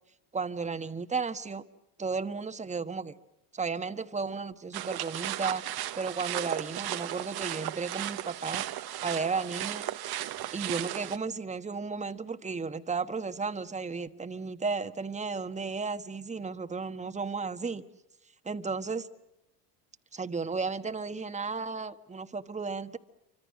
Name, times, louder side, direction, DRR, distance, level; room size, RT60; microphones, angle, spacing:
voice 1, 0.3-1.6 2.0-3.1 3.5-5.6 6.0-8.7 9.0-9.8 10.5-17.8 18.5-19.1 20.1-23.0, right 4 dB, 15° right, 1.4 m, -34 dB
sound 1, 4.7-11.2, right 13 dB, 50° right, 1.3 m, -35 dB
28.5 x 25.5 x 6.3 m
hypercardioid pair, 80°, 48 cm